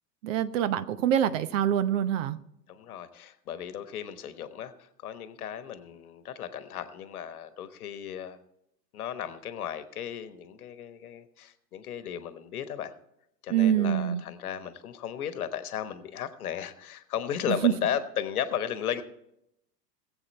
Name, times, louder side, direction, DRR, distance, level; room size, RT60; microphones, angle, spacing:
voice 1, 0.2-2.4 13.5-14.2 17.5-17.7, right 10 dB, 50° right, 13 dB, 0.9 m, -25 dB
voice 2, 2.7-8.4 8.9-12.9 13.4-19.0, left 9 dB, 60° left, 12 dB, 1.2 m, -35 dB
20.0 x 7.9 x 4.4 m, 0.80 s
figure-of-eight pair, 90°, 48 cm